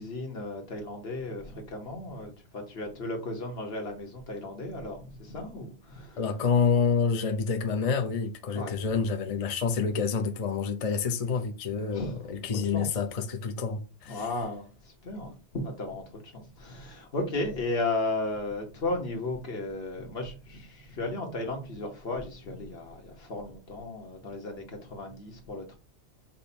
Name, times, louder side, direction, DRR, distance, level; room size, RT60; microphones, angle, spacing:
voice 1, 0.0-6.2 8.5-8.8 9.2-9.3 11.9-12.3 12.6-12.9 14.0-25.8, left 2 dB, 65° left, 1.4 m, -35 dB
voice 2, 6.2-14.2, left 5 dB, 45° left, 0.5 m, -28 dB
5.2 x 2.2 x 4.2 m
omnidirectional pair, 1.1 m